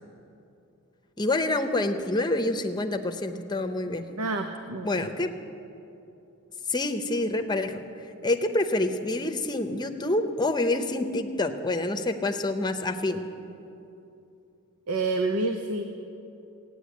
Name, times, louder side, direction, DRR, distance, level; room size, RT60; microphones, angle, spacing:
voice 1, 1.2-4.1 4.8-5.3 6.7-7.8 8.2-13.2, left 2 dB, 20° left, 6 dB, 0.8 m, -27 dB
voice 2, 4.2-5.1 14.9-15.8, right 3 dB, 90° right, 5 dB, 0.8 m, -28 dB
15.0 x 9.5 x 8.4 m, 2.8 s
head